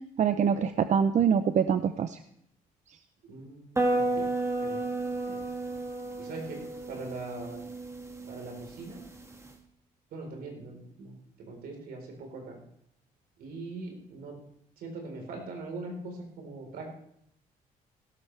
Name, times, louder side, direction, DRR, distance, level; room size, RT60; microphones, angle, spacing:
voice 1, 0.2-2.2, right 7 dB, 50° right, 11 dB, 0.6 m, -24 dB
voice 2, 3.2-4.3 4.6-4.8 5.3-5.4 6.2-6.6 6.9-7.6 8.3-9.0 10.1-12.6 13.4-14.4 14.8-16.9, right 3 dB, 75° right, 1 dB, 4.1 m, -41 dB
sound 1, 3.8-9.5, right 2 dB, 15° right, 1.9 m, -32 dB
17.0 x 12.5 x 3.3 m, 0.73 s
supercardioid pair, 75°, 16 cm